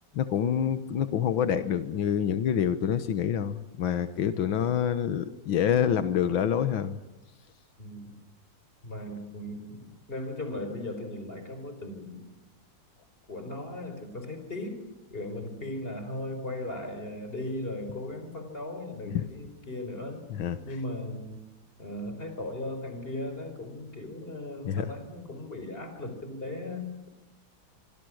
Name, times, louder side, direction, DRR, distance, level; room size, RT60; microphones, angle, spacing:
voice 1, 0.1-7.0 19.1-19.2 20.3-20.6 24.7-24.9, left 9 dB, 85° left, 11 dB, 1.9 m, -27 dB
voice 2, 7.8-8.2 8.8-9.8 10.1-12.2 13.3-14.8 15.1-20.3 20.6-21.4 21.8-27.1, left 1 dB, 30° left, 8 dB, 4.8 m, -37 dB
26.0 x 24.5 x 6.4 m, 0.95 s
omnidirectional pair, 2.1 m